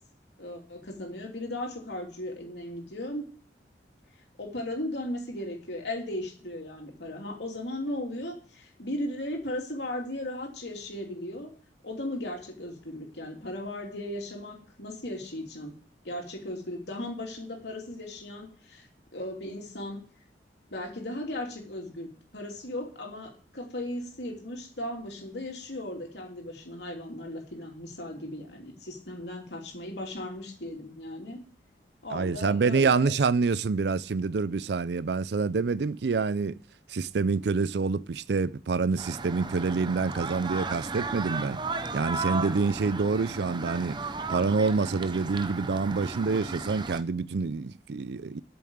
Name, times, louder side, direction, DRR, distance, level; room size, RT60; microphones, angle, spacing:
voice 1, 0.4-3.3 4.4-11.5 11.8-15.8 16.0-18.9 19.1-20.0 20.7-31.4 32.0-33.2, left 1 dB, 75° left, 3.0 m, -37 dB
voice 2, 32.1-36.6 36.9-41.6 41.9-44.0 44.3-48.4, right 4 dB, 70° right, 0.5 m, -27 dB
sound 1, 39.0-47.0, right 3 dB, 25° right, 0.7 m, -35 dB
8.5 x 6.9 x 7.9 m
head